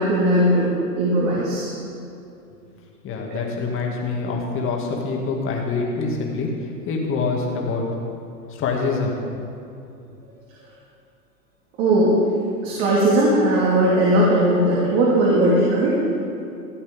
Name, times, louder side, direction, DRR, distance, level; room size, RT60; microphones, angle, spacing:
voice 1, 0.0-1.7 3.3-3.4 11.8-12.2 12.6-16.0, right 1 dB, 45° right, -6 dB, 2.7 m, -18 dB
voice 2, 3.0-7.8 8.5-9.2, left 4 dB, 25° left, 0 dB, 2.2 m, -25 dB
15.0 x 8.0 x 5.3 m, 2.6 s
hypercardioid pair, 125°, 50 cm